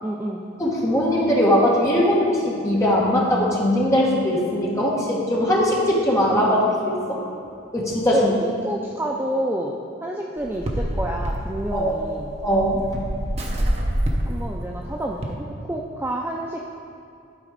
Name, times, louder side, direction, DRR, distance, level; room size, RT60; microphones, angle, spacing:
voice 1, 0.0-0.4 6.3-6.9 8.1-12.4 14.3-16.6, right 1 dB, 10° right, -1 dB, 0.3 m, -29 dB
voice 2, 0.6-7.2 7.7-8.3 11.7-11.9 12.4-13.0, equal, 15° left, -5 dB, 1.3 m, -20 dB
sound 1, 10.4-15.3, equal, 30° right, 0.7 m, -26 dB
11.5 x 4.1 x 5.0 m, 2.5 s
head